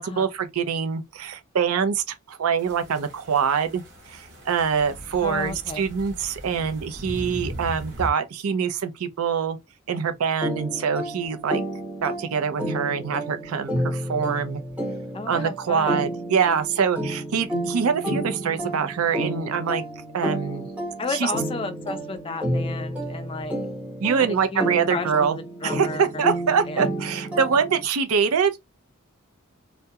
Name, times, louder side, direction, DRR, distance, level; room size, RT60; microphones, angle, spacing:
voice 1, 0.0-3.8 4.1-9.6 9.9-11.6 12.0-14.6 15.3-19.8 20.1-20.7 21.1-21.3 24.0-25.4 25.6-28.5, right 6 dB, 90° right, 0.5 m, -24 dB
sound 1, 2.6-8.1, equal, 55° right, 0.9 m, -38 dB
voice 2, 5.2-5.9 15.1-16.1 21.0-23.6 24.2-27.0, left 3 dB, 25° left, 0.3 m, -33 dB
sound 2, 10.4-27.9, right 1 dB, 5° right, 0.8 m, -31 dB
2.3 x 2.1 x 2.7 m
head